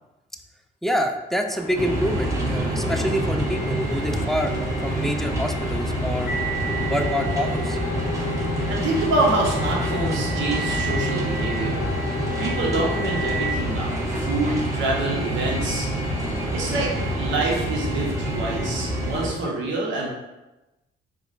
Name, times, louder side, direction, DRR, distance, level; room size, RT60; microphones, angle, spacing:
voice 1, 0.8-4.5 4.8-6.3 6.8-7.8 11.8-11.9, equal, ahead, 4 dB, 0.3 m, -26 dB
sound 1, 1.5-17.4, right 2 dB, 45° right, 0.8 m, -39 dB
sound 2, 1.8-19.3, equal, 15° right, 0.9 m, -27 dB
sound 3, 6.3-13.6, left 1 dB, 60° left, 0.6 m, -31 dB
voice 2, 8.7-11.9 12.4-15.9 16.5-20.1, right 2 dB, 70° right, -3 dB, 0.9 m, -26 dB
4.7 x 2.1 x 2.5 m, 1.0 s
cardioid pair, 90°, 20 cm